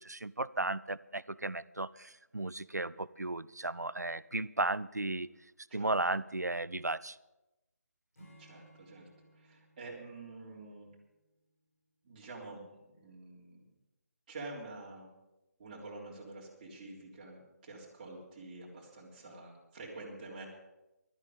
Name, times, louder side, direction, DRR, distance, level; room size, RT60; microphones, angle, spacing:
voice 1, 0.0-5.3 5.7-7.2, right 2 dB, 80° right, 19 dB, 0.5 m, -35 dB
Acoustic guitar / Strum, 8.1-11.6, right 1 dB, 60° left, 6.6 m, -61 dB
voice 2, 8.4-9.1 9.4-10.9 12.0-13.6 14.3-15.1 15.6-20.5, right 2 dB, 25° right, -3 dB, 3.6 m, -48 dB
15.5 x 13.0 x 5.3 m, 0.96 s
figure-of-eight pair, 150°, 9 cm